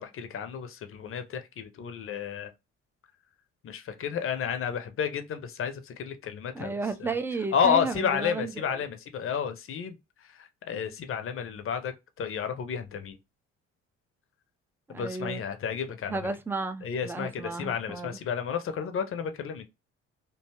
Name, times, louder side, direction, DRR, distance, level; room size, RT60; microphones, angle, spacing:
voice 1, 0.0-2.5 3.6-6.7 7.0-7.1 7.5-13.2 14.9-16.2 16.8-19.7, left 7 dB, 35° left, 0.6 m, -31 dB
voice 2, 6.5-8.5 14.9-15.4 16.1-18.2, right 3 dB, 5° right, 0.3 m, -33 dB
2.7 x 2.3 x 2.8 m
figure-of-eight pair, 50°, 36 cm